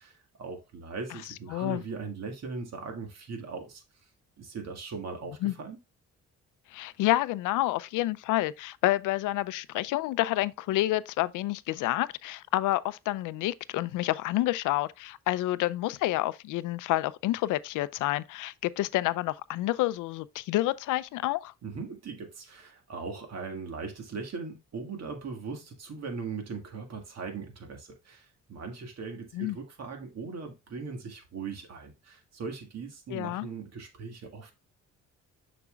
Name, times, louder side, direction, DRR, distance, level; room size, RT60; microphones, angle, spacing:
voice 1, 0.0-3.8 4.4-5.8 21.6-34.5, right 4 dB, 60° right, 1.9 m, -39 dB
voice 2, 6.7-21.5 29.3-29.6 33.1-33.5, left 16 dB, 85° left, 0.5 m, -29 dB
6.9 x 6.0 x 2.3 m
cardioid pair, 90°, 30 cm